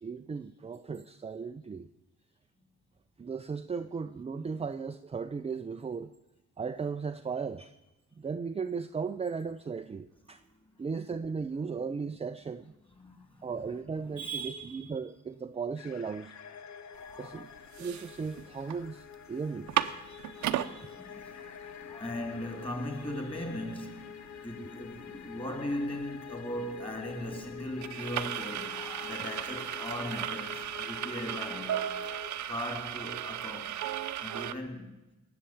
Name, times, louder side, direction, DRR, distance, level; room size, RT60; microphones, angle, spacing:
voice 1, 0.0-1.9 3.2-6.1 6.6-7.8 8.2-10.4 10.8-12.7 13.4-16.3 17.2-17.5 17.8-20.0 20.8-20.9, right 5 dB, 20° right, 0.5 m, -36 dB
voice 2, 12.9-13.4 14.2-14.9 16.9-17.5 20.0-21.4 21.8-32.1 32.5-33.8 34.2-34.9, equal, 15° left, 3.3 m, -39 dB
sound 1, 15.8-32.3, left 8 dB, 65° left, 1.1 m, -47 dB
sound 2, 17.1-17.2 17.6-18.8 19.1-19.2 19.5-20.7 21.3-21.4 21.7-34.5, right 11 dB, 70° right, 0.9 m, -36 dB
18.5 x 7.0 x 8.8 m
cardioid pair, 90°, 30 cm